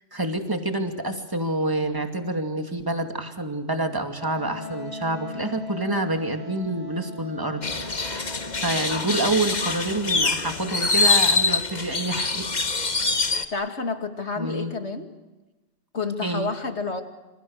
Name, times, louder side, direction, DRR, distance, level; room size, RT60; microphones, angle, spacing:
voice 1, 0.1-12.5 13.2-13.3 14.4-14.7 16.2-16.5, right 2 dB, 20° right, 5 dB, 2.6 m, -28 dB
Wind instrument woodwind instrument, 4.2-9.8, left 2 dB, 90° right, 6.2 m, -39 dB
sound 1, 7.6-13.5, left 3 dB, 40° left, 1.6 m, -24 dB
voice 2, 13.5-15.1 15.9-17.0, left 4 dB, 70° left, 6 dB, 2.7 m, -29 dB
28.5 x 26.5 x 6.6 m, 1.1 s
omnidirectional pair, 1.2 m